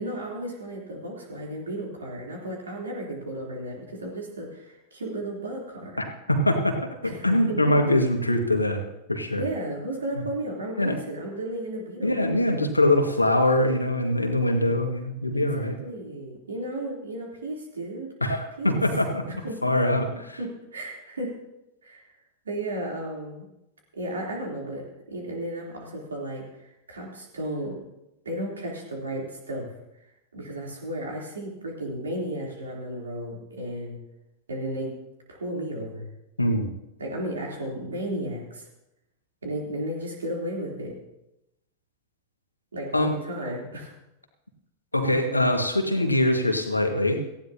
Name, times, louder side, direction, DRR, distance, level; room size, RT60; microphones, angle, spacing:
voice 1, 0.0-6.0 7.0-7.7 9.4-12.2 15.3-18.1 18.6-18.8 19.3-19.7 20.4-21.3 21.8-22.1 22.5-23.5 23.9-27.8 28.3-29.7 30.3-34.0 34.5-34.9 35.3-36.1 37.0-38.7 39.4-41.0 42.7-43.9, right 1 dB, 70° right, -1 dB, 3.4 m, -34 dB
voice 2, 6.0-8.8 9.1-9.4 10.8-11.0 12.0-15.7 18.2-19.2 19.6-20.4 36.4-36.7 42.9-43.1 44.9-47.2, left 1 dB, 85° left, 4 dB, 1.8 m, -23 dB
18.0 x 15.0 x 2.9 m, 0.90 s
figure-of-eight pair, 90°, 0 cm